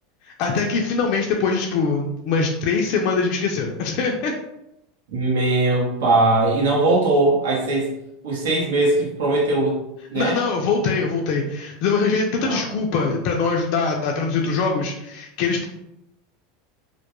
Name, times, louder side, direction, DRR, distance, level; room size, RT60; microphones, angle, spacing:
voice 1, 0.4-4.3 10.1-15.6, left 4 dB, 60° left, 0 dB, 0.3 m, -22 dB
voice 2, 5.1-7.9 8.2-9.8 10.1-10.4 12.4-12.6, right 2 dB, 80° right, -3 dB, 0.8 m, -20 dB
2.2 x 2.1 x 2.9 m, 0.86 s
supercardioid pair, 120°, 0 cm